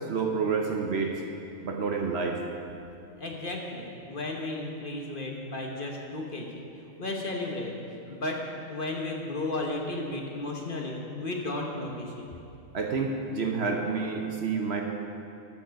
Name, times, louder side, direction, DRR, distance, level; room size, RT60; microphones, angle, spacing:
voice 1, 0.1-1.2 1.6-2.4 12.7-14.8, right 5 dB, 55° right, 2 dB, 1.0 m, -29 dB
voice 2, 3.2-6.6 7.0-7.7 8.1-8.4 8.7-12.3, left 2 dB, 40° left, 0 dB, 1.1 m, -34 dB
12.5 x 7.1 x 5.2 m, 2.7 s
omnidirectional pair, 1.5 m